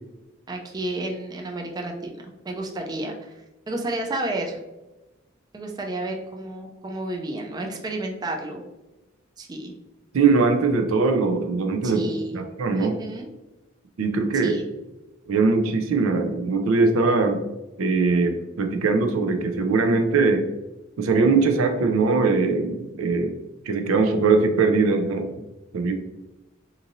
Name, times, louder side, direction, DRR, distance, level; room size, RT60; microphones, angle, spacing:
voice 1, 0.5-4.6 5.5-8.6 9.4-9.7 11.8-12.4 12.7-13.3 14.4-14.6, right 2 dB, 20° right, 2 dB, 0.3 m, -31 dB
voice 2, 10.1-12.9 14.0-14.5 15.3-17.4 17.8-20.4 21.0-23.3 23.7-25.3 25.7-25.9, right 4 dB, 90° right, 5 dB, 0.4 m, -21 dB
2.9 x 2.6 x 2.5 m, 1.0 s
head